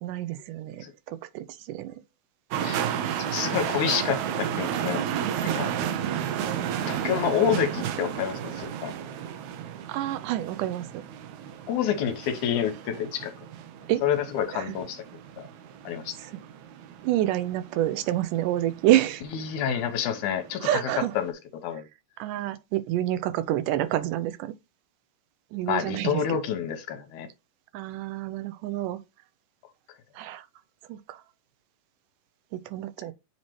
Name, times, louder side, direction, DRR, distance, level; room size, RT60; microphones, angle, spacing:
voice 1, 0.0-2.0 6.5-7.1 9.9-11.0 13.9-14.0 14.5-14.7 16.2-16.3 17.0-19.2 20.6-21.1 22.2-24.5 25.5-26.4 27.7-29.0 30.2-30.5 30.9-31.2 32.5-33.1, right 13 dB, 90° right, 2.2 m, -28 dB
sound 1, 2.5-21.3, right 9 dB, 75° right, 1.9 m, -33 dB
voice 2, 3.2-5.0 5.4-5.7 6.9-8.9 11.7-13.3 14.0-15.0 15.4-15.5 15.9-16.2 19.4-20.8 21.2-21.3 21.6-21.9 25.7-27.3, left 8 dB, 75° left, 2.2 m, -28 dB
7.5 x 2.9 x 4.5 m
omnidirectional pair, 3.7 m